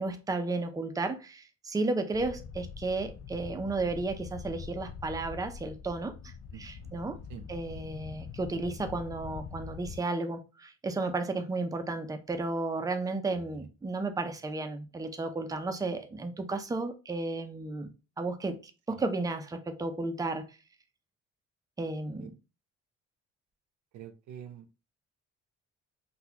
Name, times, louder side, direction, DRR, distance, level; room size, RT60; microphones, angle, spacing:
voice 1, 0.0-7.2 7.5-17.9 18.2-18.6 18.9-20.6 21.8-22.3, right 3 dB, 10° right, 0.5 m, -33 dB
sound 1, 2.1-10.0, left 6 dB, 50° left, 0.4 m, -44 dB
voice 2, 6.5-6.9 7.3-7.4 13.4-13.7 18.9-19.0 22.2-22.3 23.9-24.6, right 9 dB, 75° right, 0.6 m, -46 dB
3.9 x 2.3 x 2.8 m
cardioid pair, 90°, 30 cm